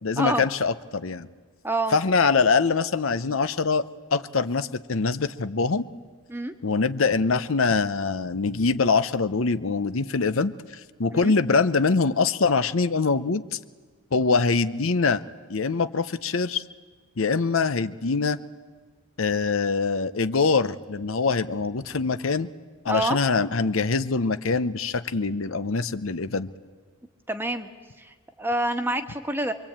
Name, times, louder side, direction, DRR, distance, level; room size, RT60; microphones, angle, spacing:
voice 1, 0.0-1.3 1.9-3.8 4.1-5.9 6.6-13.6 14.1-15.2 15.5-16.6 17.2-18.4 19.2-22.5 22.8-26.5, left 4 dB, 70° left, 12 dB, 0.8 m, -24 dB
voice 2, 1.6-2.0 6.3-6.5 11.1-11.3 22.9-23.2 27.3-27.7 28.0-29.5, right 1 dB, 10° right, 6 dB, 1.3 m, -27 dB
26.0 x 23.5 x 8.8 m, 1.5 s
head